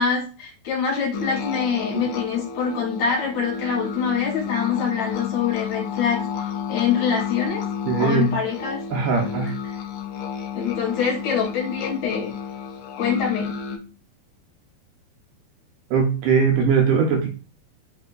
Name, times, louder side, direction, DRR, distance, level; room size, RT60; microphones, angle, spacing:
voice 1, 0.0-7.6 8.0-8.8 9.2-9.8 10.5-12.3 13.0-13.5, left 6 dB, 60° left, -3 dB, 2.3 m, -25 dB
sound 1, 1.1-13.8, left 7 dB, 75° left, 1.9 m, -31 dB
voice 2, 7.9-8.3 8.9-9.5 15.9-17.3, right 6 dB, 75° right, 2 dB, 2.2 m, -20 dB
6.2 x 2.7 x 2.5 m, 0.35 s
omnidirectional pair, 4.2 m